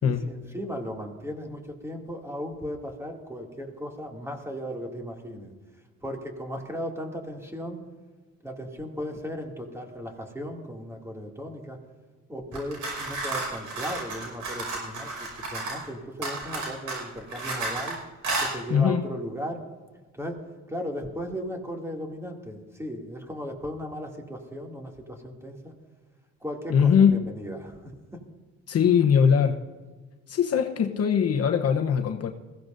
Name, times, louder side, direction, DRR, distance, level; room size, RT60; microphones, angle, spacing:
voice 1, 0.0-5.5 6.0-7.8 8.4-11.8 12.3-18.0 18.4-19.6 20.1-20.4 20.7-25.7 26.4-28.2, equal, 10° right, 1 dB, 2.5 m, -36 dB
sound 1, 12.5-15.9 16.2-17.9 18.2-18.5, right 3 dB, 80° right, 5.5 m, -32 dB
voice 2, 18.7-19.0 26.7-27.2 28.7-29.6 30.3-32.3, left 7 dB, 55° left, 4 dB, 1.0 m, -21 dB
21.0 x 15.5 x 2.6 m, 1.4 s
cardioid pair, 90°, 30 cm